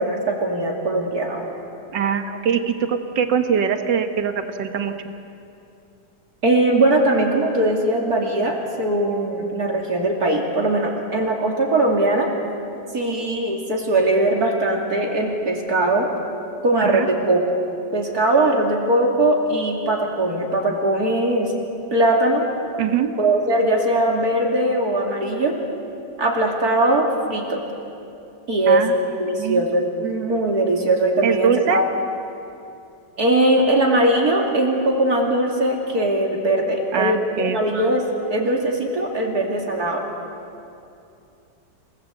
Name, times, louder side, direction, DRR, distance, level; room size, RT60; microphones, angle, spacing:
voice 1, 0.0-1.5 6.4-12.3 12.9-16.1 16.6-17.4 17.9-21.5 21.9-22.4 23.2-25.5 26.2-27.6 28.5-28.9 29.2-31.8 33.2-40.0, right 1 dB, 55° right, 0 dB, 3.0 m, -20 dB
voice 2, 1.9-4.9 16.8-17.1 22.8-23.1 28.7-28.9 29.3-29.7 31.2-31.8 36.9-37.6, right 7 dB, 85° right, 7 dB, 2.0 m, -22 dB
28.5 x 18.5 x 8.1 m, 2.7 s
omnidirectional pair, 1.9 m